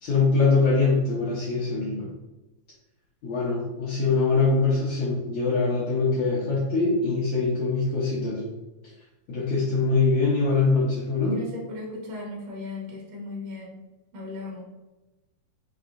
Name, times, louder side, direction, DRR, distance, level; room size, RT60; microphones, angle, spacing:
voice 1, 0.0-2.1 3.2-8.4 9.3-11.4, left 3 dB, 70° left, -7 dB, 1.7 m, -23 dB
voice 2, 11.2-13.8 14.1-14.7, left 2 dB, 80° right, -2 dB, 2.3 m, -36 dB
5.8 x 2.7 x 2.5 m, 1.1 s
omnidirectional pair, 3.9 m